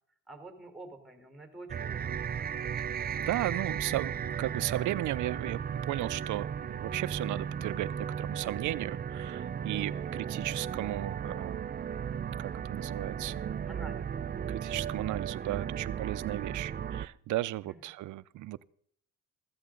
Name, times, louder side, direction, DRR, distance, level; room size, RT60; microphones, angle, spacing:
voice 1, 0.3-2.9 13.7-14.2 17.6-17.8, right 2 dB, ahead, 5 dB, 3.7 m, -49 dB
sound 1, 1.7-17.1, right 8 dB, 30° right, 0.5 m, -35 dB
voice 2, 3.2-11.6 12.4-13.5 14.5-18.6, right 16 dB, 75° right, 17 dB, 0.6 m, -35 dB
15.0 x 14.0 x 3.8 m, 0.62 s
cardioid pair, 90°, 30 cm